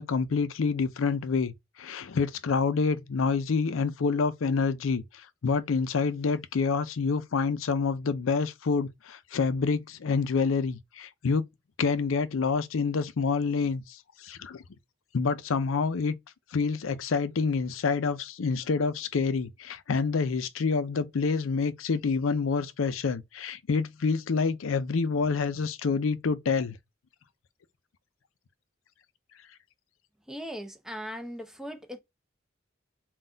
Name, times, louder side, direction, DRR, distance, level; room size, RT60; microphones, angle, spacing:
voice 1, 0.0-11.4 11.8-14.6 15.1-16.2 16.5-26.8, left 5 dB, 85° left, 0.5 m, -27 dB
voice 2, 30.3-32.0, equal, 5° right, 0.6 m, -39 dB
4.0 x 2.3 x 3.8 m
head